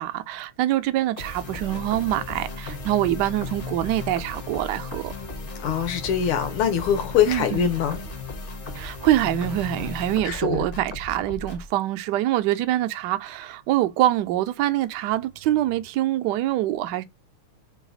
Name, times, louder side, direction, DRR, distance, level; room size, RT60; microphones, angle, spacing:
voice 1, 0.0-5.1 7.3-7.7 8.7-17.0, right 13 dB, 80° right, 0.9 m, -25 dB
sound 1, 1.2-11.7, left 2 dB, 45° left, 0.7 m, -36 dB
voice 2, 5.6-8.0 10.2-10.6, left 9 dB, 85° left, 1.9 m, -23 dB
3.9 x 2.4 x 3.9 m
omnidirectional pair, 2.4 m